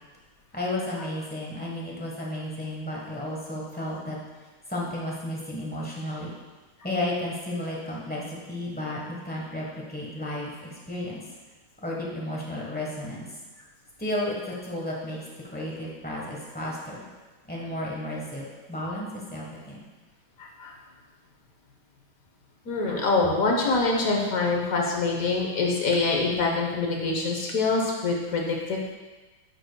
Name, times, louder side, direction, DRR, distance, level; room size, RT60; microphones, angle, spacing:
voice 1, 0.5-4.2 4.7-6.3 6.8-11.2 11.8-13.3 14.0-14.3 14.6-15.2 15.5-17.0 17.5-19.9, left 1 dB, 10° left, -4 dB, 0.5 m, -33 dB
voice 2, 20.4-20.7 22.6-28.9, left 3 dB, 50° left, 0 dB, 1.1 m, -25 dB
10.0 x 6.4 x 2.3 m, 1.3 s
omnidirectional pair, 2.4 m